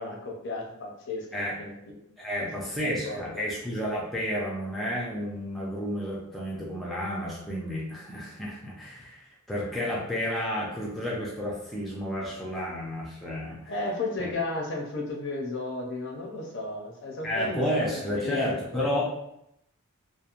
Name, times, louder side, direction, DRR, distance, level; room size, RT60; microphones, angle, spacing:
voice 1, 0.0-1.8 2.7-3.4 13.7-17.6 17.9-18.8, left 2 dB, 55° left, 0 dB, 0.5 m, -34 dB
voice 2, 2.2-13.7 14.2-14.3 17.2-19.0, equal, ahead, -6 dB, 0.3 m, -31 dB
2.9 x 2.0 x 2.4 m, 0.81 s
head